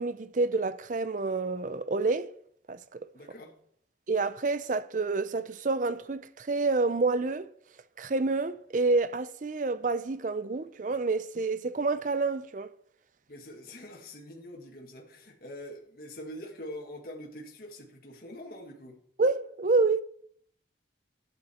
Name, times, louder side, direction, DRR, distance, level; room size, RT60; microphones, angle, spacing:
voice 1, 0.0-2.3 2.7-3.0 4.1-7.5 8.0-12.7 19.2-20.0, right 3 dB, 45° right, 0.5 m, -28 dB
voice 2, 3.1-3.5 13.3-19.0, left 1 dB, 50° left, 1.8 m, -44 dB
12.0 x 9.0 x 4.3 m
head